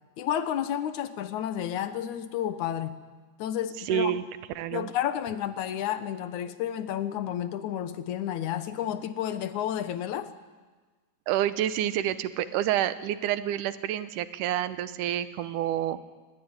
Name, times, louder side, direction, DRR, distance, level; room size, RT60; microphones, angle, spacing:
voice 1, 0.2-3.0 3.4-4.1 4.7-10.3, left 10 dB, 65° left, 11 dB, 2.1 m, -31 dB
voice 2, 3.9-4.2 4.6-4.9 11.3-16.0, right 11 dB, 70° right, 13 dB, 2.1 m, -28 dB
25.0 x 20.0 x 9.7 m, 1.4 s
omnidirectional pair, 4.4 m